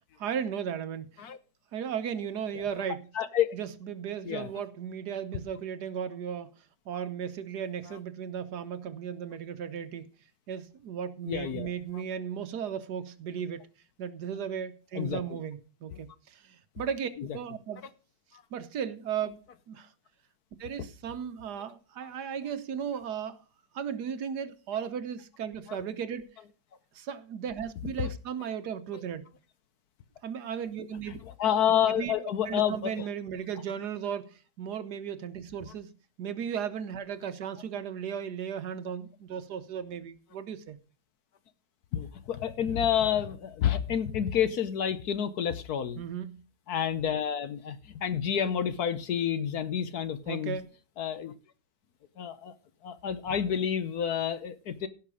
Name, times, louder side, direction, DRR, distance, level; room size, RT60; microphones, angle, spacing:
voice 1, 0.2-1.3 1.7-3.0 3.5-6.5 6.9-10.1 10.5-13.6 14.0-17.8 18.5-19.4 19.7-19.9 20.6-23.4 23.7-26.3 26.9-29.3 30.2-31.2 31.9-32.1 32.4-35.9 36.2-40.8 46.0-46.4 50.3-50.7, right 8 dB, 65° right, 1.4 m, -36 dB
voice 2, 2.5-2.9 3.1-3.5 4.2-4.5 7.8-8.0 11.2-12.0 14.9-15.4 17.2-17.4 24.7-24.9 25.7-25.8 26.4-26.5 27.8-28.1 28.4-28.5 28.9-29.0 31.0-33.1 33.5-33.6 35.6-35.7 41.9-46.0 46.7-50.6 51.0-51.3 52.2-52.5 52.8-54.9, left 9 dB, 60° left, 1.2 m, -30 dB
16.5 x 5.9 x 4.9 m
omnidirectional pair, 2.0 m